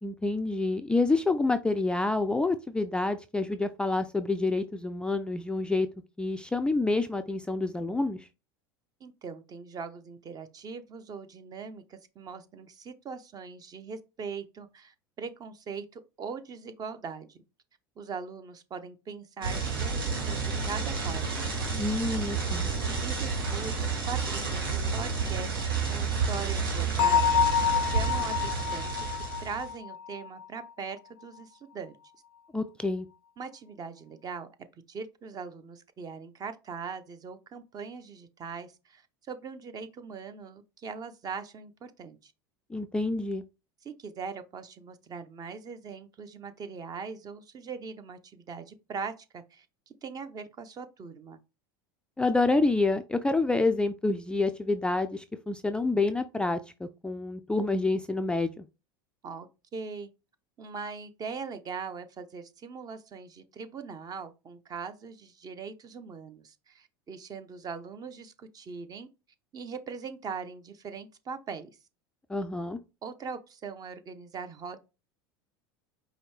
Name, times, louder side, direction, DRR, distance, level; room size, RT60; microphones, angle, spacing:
voice 1, 0.0-5.9 6.2-8.3 21.8-22.7 32.5-33.1 42.7-43.4 52.2-58.7 72.3-72.8, left 3 dB, 10° left, 0.3 m, -28 dB
voice 2, 9.0-17.4 18.0-21.4 22.9-27.4 27.8-29.1 29.4-32.0 33.4-34.5 34.9-39.0 39.3-42.3 43.8-49.7 50.0-51.4 59.2-60.1 60.6-69.1 69.5-71.8 73.0-74.8, right 5 dB, 35° right, 0.7 m, -41 dB
sound 1, 19.4-29.7, right 5 dB, 85° right, 1.5 m, -30 dB
Bell, 27.0-30.6, left 8 dB, 85° left, 0.4 m, -27 dB
5.0 x 2.7 x 3.2 m
hypercardioid pair, 90°, 12 cm